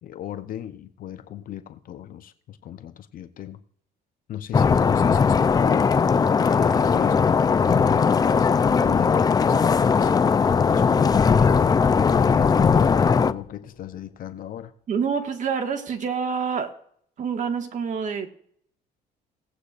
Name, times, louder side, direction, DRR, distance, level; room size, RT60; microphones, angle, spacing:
voice 1, 0.0-3.6 4.3-5.9 6.4-10.3 10.7-11.7 12.0-14.7, left 11 dB, 55° left, 10 dB, 0.7 m, -36 dB
sound 1, 4.5-13.3, left 5 dB, 25° left, 0.4 m, -19 dB
sound 2, 12.4-14.7, left 8 dB, 70° left, 1.6 m, -45 dB
voice 2, 14.9-16.7 17.2-18.3, right 6 dB, 45° right, 5 dB, 1.7 m, -27 dB
18.5 x 8.3 x 2.5 m, 0.64 s
cardioid pair, 110°, 17 cm